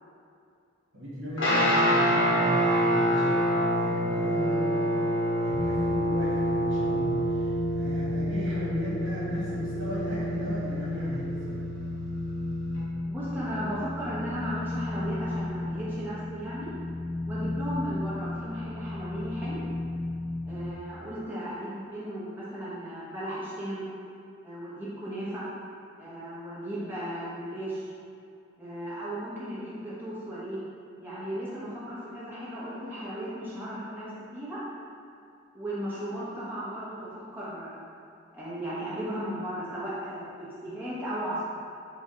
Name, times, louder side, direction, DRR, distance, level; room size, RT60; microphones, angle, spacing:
voice 1, 0.9-11.6, equal, 60° right, -9 dB, 1.5 m, -36 dB
Guitar, 1.4-12.8, equal, 65° left, 1.0 m, -27 dB
sound 1, 5.5-20.7, left 2 dB, 10° left, 0.3 m, -34 dB
voice 2, 13.1-16.7 17.3-19.6 20.5-23.8 24.4-25.5 26.0-27.9 28.6-30.6 31.0-34.1 34.3-34.6 35.5-37.9 38.3-41.4, equal, 10° right, -10 dB, 0.9 m, -36 dB
4.7 x 2.3 x 3.7 m, 2.5 s
head